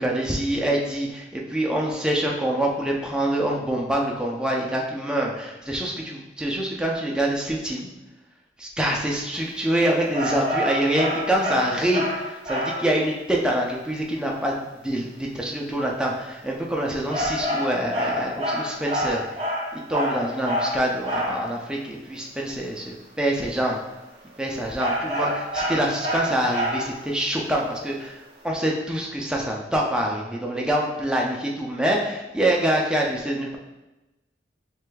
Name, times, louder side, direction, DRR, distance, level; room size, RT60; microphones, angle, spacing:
voice 1, 0.0-7.9 8.6-19.4 19.7-23.8 24.4-33.6, right 1 dB, 5° right, -2 dB, 0.5 m, -25 dB
sound 1, 10.1-12.9 17.1-21.4 24.8-27.0, equal, 35° right, 0.8 m, -27 dB
4.8 x 3.3 x 2.3 m, 1.0 s
head